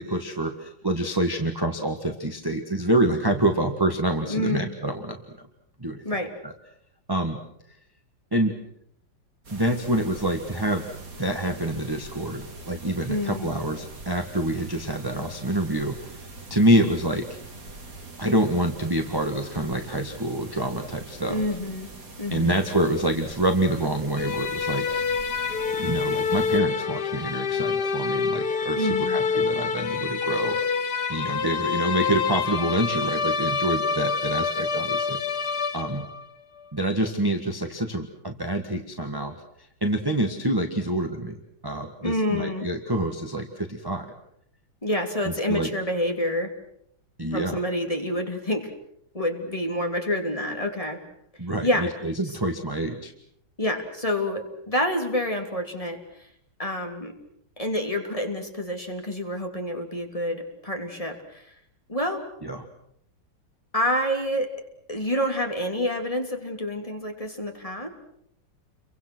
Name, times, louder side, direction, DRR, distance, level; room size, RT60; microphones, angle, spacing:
voice 1, 0.0-5.2 5.8-6.0 6.4-6.5 7.1-7.4 8.3-8.6 9.5-10.8 11.2-17.3 18.2-21.4 22.3-24.8 25.7-30.6 31.1-36.1 36.7-39.4 39.8-44.1 45.2-45.7 47.2-47.6 51.4-53.1 62.4-62.6, right 1 dB, 15° right, 5 dB, 1.6 m, -26 dB
voice 2, 4.3-4.7 6.0-6.3 13.1-13.5 21.3-21.9 22.2-22.6 28.7-29.2 42.0-42.7 44.8-46.5 47.3-48.7 49.1-51.0 51.6-51.9 52.2-52.4 53.6-56.3 56.6-57.1 57.6-61.5 61.9-62.3 63.7-64.5 64.9-67.9, left 1 dB, 15° left, 3 dB, 3.0 m, -28 dB
sound 1, 9.4-26.6, right 3 dB, 45° right, 3.3 m, -43 dB
sound 2, 24.2-36.2, left 5 dB, 60° left, 1.7 m, -27 dB
29.5 x 24.0 x 6.3 m, 0.71 s
omnidirectional pair, 2.0 m